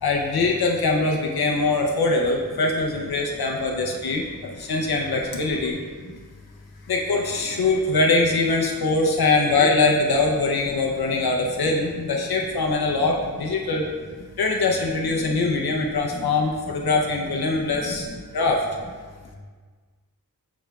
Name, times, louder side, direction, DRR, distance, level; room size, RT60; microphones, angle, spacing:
voice 1, 0.0-4.2 4.6-5.8 6.9-13.8 14.4-18.1 18.3-18.6, left 3 dB, 80° left, 0 dB, 0.7 m, -22 dB
voice 2, 15.0-15.6 17.6-18.0, left 2 dB, 45° left, 0 dB, 0.9 m, -37 dB
7.0 x 6.5 x 2.3 m, 1.5 s
wide cardioid pair, 100°, 37 cm